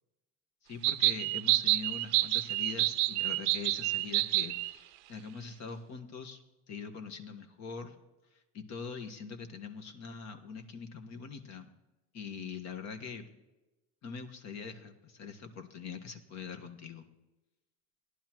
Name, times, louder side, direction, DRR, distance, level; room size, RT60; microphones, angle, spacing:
voice 1, 0.6-6.4 6.7-7.9 8.5-11.7 12.1-13.3 14.0-17.1, left 5 dB, 50° left, 7 dB, 1.5 m, -43 dB
sound 1, 0.8-4.7, right 18 dB, 85° right, 0.6 m, -28 dB
17.5 x 11.5 x 3.0 m, 1.1 s
supercardioid pair, 110°, 35 cm